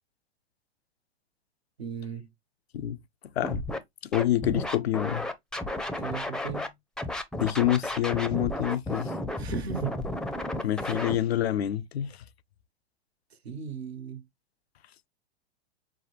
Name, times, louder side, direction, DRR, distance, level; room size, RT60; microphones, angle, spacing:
voice 1, 1.8-2.3 6.0-6.7 9.4-10.0 13.4-14.2, right 6 dB, 80° right, 1.4 m, -36 dB
Scratching (performance technique), 3.4-3.8 4.1-6.7 7.0-11.2, left 1 dB, ahead, 0.6 m, -32 dB
voice 2, 4.1-5.2 7.4-9.1 10.6-12.2, left 12 dB, 80° left, 0.6 m, -27 dB
6.0 x 2.2 x 3.1 m
hypercardioid pair, 105°, 31 cm